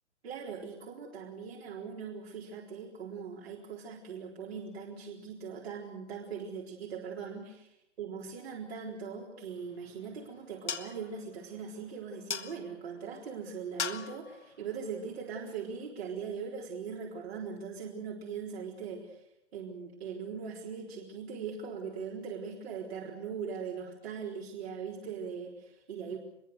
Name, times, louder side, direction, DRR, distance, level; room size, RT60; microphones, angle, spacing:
voice 1, 0.2-7.6 8.0-19.2 19.5-26.2, right 6 dB, 55° right, -2 dB, 4.2 m, -40 dB
sound 1, 9.5-15.9, left 7 dB, 70° left, 1.8 m, -43 dB
24.0 x 22.5 x 6.6 m, 0.79 s
figure-of-eight pair, 125°, 36 cm